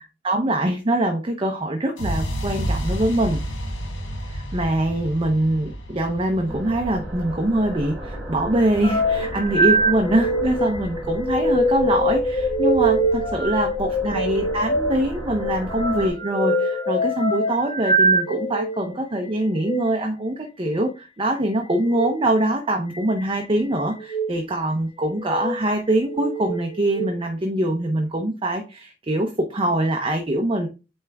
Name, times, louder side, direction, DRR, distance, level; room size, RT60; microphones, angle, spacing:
voice 1, 0.0-3.4 4.2-30.7, right 1 dB, 30° right, 3 dB, 0.7 m, -23 dB
sound 1, 2.0-9.9, equal, 85° left, 1.3 m, -31 dB
sound 2, 6.5-16.1, right 1 dB, 10° right, 2.8 m, -35 dB
sound 3, 8.8-18.8 19.5-19.8 21.8-22.1 22.9-23.5 24.0-24.3 25.1-25.6 26.1-27.1, right 1 dB, 30° left, 1.2 m, -23 dB
8.6 x 3.4 x 3.4 m, 0.30 s
head